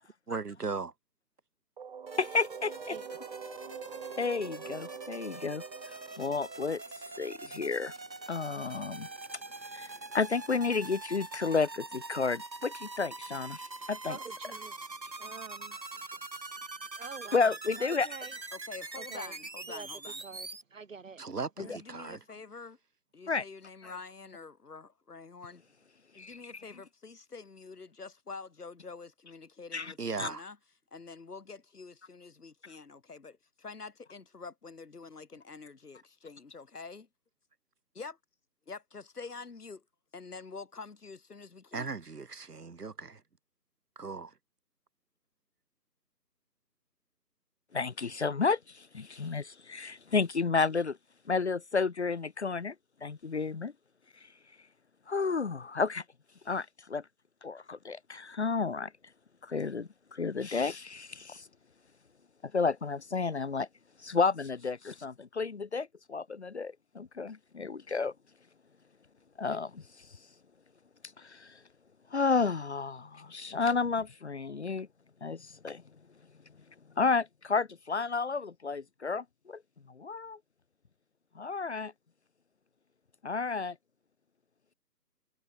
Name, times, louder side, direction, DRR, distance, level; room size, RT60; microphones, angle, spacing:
voice 1, 0.3-0.9 21.2-22.2 30.0-30.4 41.7-43.2 44.0-44.3, right 4 dB, 65° right, 3.0 m, -37 dB
sound 1, 1.8-7.5, right 6 dB, 30° right, 3.5 m, -45 dB
sound 2, 2.1-20.6, right 3 dB, 90° right, 5.5 m, -44 dB
voice 2, 2.2-3.0 4.2-5.6 6.2-6.8 7.2-7.9 8.3-9.1 9.7-14.2 17.3-18.1 21.6-21.8 23.3-23.4 26.2-26.4 29.7-29.9 30.2-30.3 47.7-51.0 51.3-52.7 53.0-53.7 55.1-56.0 56.5-57.0 57.4-58.9 59.4-61.4 62.5-63.7 64.0-68.1 69.4-69.8 71.2-71.5 72.1-74.9 75.2-75.8 77.0-79.6 79.9-80.4 81.3-81.9 83.2-83.7, left 4 dB, 40° left, 1.5 m, -31 dB
voice 3, 14.0-14.8 15.2-16.0 17.0-17.5 17.8-18.4 18.9-19.3 19.7-19.9 20.2-21.2 21.6-21.8, right 5 dB, 50° right, 6.1 m, -46 dB
voice 4, 18.5-20.2 21.6-22.8 23.1-25.6 26.1-30.6 30.9-37.1 37.9-38.2 38.7-39.8 40.1-42.0, left 4 dB, 65° left, 3.4 m, -47 dB
figure-of-eight pair, 165°, 50 cm